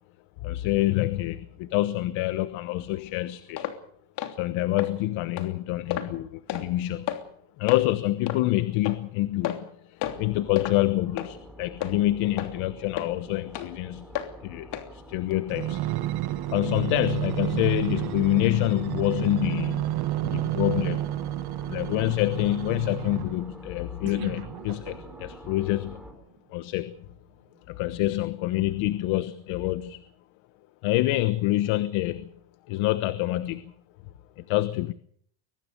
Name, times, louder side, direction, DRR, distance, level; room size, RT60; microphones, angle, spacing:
voice 1, 0.4-3.7 4.4-7.2 7.6-14.1 14.4-15.8 16.5-20.0 20.2-21.1 21.7-26.0 26.5-27.0 27.7-30.0 30.8-32.3 32.7-33.7 34.4-34.9, left 16 dB, 75° left, 13 dB, 1.3 m, -27 dB
sound 1, 3.6-3.8 4.2-4.4 4.8-4.9 5.4-5.5 5.9-6.1 6.5-6.7 7.1-7.2 7.7-7.8 8.3-8.4 8.8-9.0 9.4-9.7 10.0-10.2 10.6-10.8 11.2-11.3 11.8-11.9 12.4-12.5 13.0-13.1 13.5-13.7 14.2-14.3 14.7-14.9 15.3-15.4, left 11 dB, 60° left, 3.2 m, -31 dB
sound 2, 10.1-26.1, equal, ahead, 5.5 m, -47 dB
sound 3, 15.5-23.5 24.1-25.3 25.9-26.0, right 15 dB, 50° right, 1.3 m, -31 dB
23.5 x 18.5 x 6.9 m, 0.63 s
cardioid pair, 130°, 48 cm